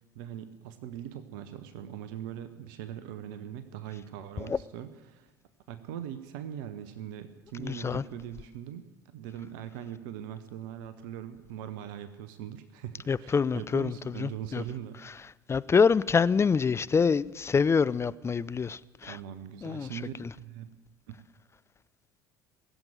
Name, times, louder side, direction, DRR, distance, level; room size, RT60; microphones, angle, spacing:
voice 1, 0.1-5.3 5.7-8.8 9.1-15.0 19.0-20.7 21.1-21.2, right 10 dB, 65° right, 1.0 m, -41 dB
voice 2, 7.6-8.0 13.1-13.9 14.2-14.6 15.5-19.2 19.6-19.9, left 5 dB, 25° left, 0.4 m, -25 dB
19.0 x 7.8 x 9.1 m
figure-of-eight pair, 60°, 11 cm